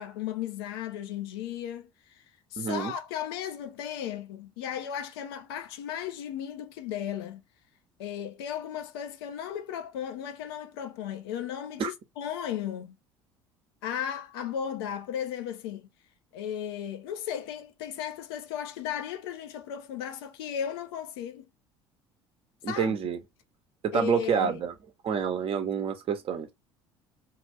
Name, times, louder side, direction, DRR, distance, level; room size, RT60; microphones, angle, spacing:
voice 1, 0.0-1.9 2.5-7.4 8.0-13.0 13.8-15.9 16.3-21.4 22.7-22.9 23.9-24.6, left 9 dB, 75° left, 0.6 m, -35 dB
voice 2, 2.6-2.9 11.8-11.9 22.6-23.2 23.8-24.7 25.0-26.5, right 7 dB, 45° right, 0.9 m, -28 dB
2.8 x 2.5 x 3.1 m
hypercardioid pair, 65°, 13 cm